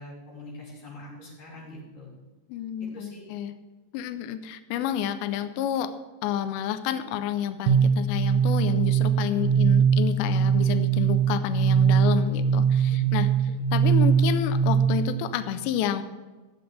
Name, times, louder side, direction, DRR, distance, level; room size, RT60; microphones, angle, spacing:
voice 1, 0.0-2.1 2.9-3.2 9.3-9.8 12.5-13.1, left 1 dB, 45° left, -6 dB, 6.2 m, -44 dB
voice 2, 2.5-3.5 3.9-5.9 6.2-16.0, left 10 dB, 90° left, 10 dB, 2.5 m, -30 dB
sound 1, 7.7-15.2, right 7 dB, 80° right, 2.9 m, -22 dB
22.5 x 8.0 x 3.4 m, 1.2 s
omnidirectional pair, 5.9 m